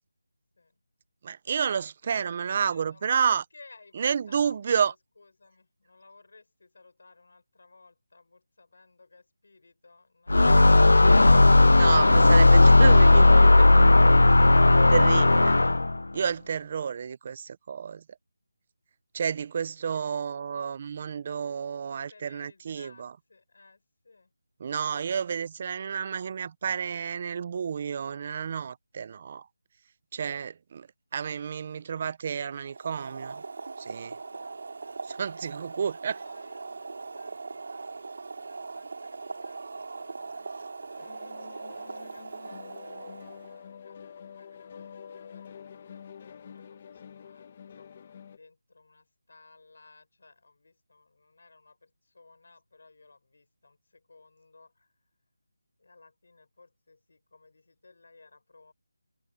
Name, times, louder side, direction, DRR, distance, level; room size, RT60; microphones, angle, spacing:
voice 1, 1.2-3.4 3.9-4.9 11.7-14.1 14.9-15.6 16.1-18.0 19.1-23.1 24.6-29.5 30.1-30.9 31.1-33.4 33.8-34.2 35.0-36.2, right 7 dB, 20° right, 0.4 m, -30 dB
voice 2, 2.0-10.6 21.8-24.3 34.3-35.1 36.1-54.9 55.8-58.7, left 3 dB, 45° left, 6.4 m, -58 dB
sound 1, 10.3-16.0, left 2 dB, 80° left, 0.3 m, -16 dB
Boiling, 32.6-43.6, right 3 dB, 40° right, 4.2 m, -40 dB
sound 2, 41.0-48.4, left 7 dB, 20° left, 0.9 m, -47 dB
figure-of-eight pair, 180°, 0 cm